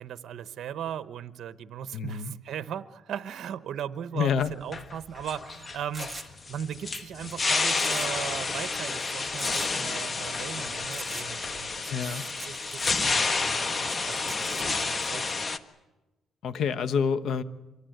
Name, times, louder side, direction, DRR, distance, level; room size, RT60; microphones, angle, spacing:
voice 1, 0.0-12.2 12.4-15.5, right 9 dB, 65° right, 12 dB, 1.0 m, -38 dB
voice 2, 1.9-2.3 4.1-4.5 11.9-12.2 16.4-17.4, left 6 dB, 70° left, 12 dB, 1.2 m, -27 dB
sound 1, 4.4-15.6, left 4 dB, 35° left, 1.4 m, -30 dB
sound 2, 5.9-6.3 7.7-8.3 8.5-8.6 9.4-9.7 10.9-11.3 12.3-12.9 14.1-14.6, right 2 dB, 10° right, 2.3 m, -41 dB
26.0 x 23.0 x 8.0 m, 1.1 s
cardioid pair, 90°, 0 cm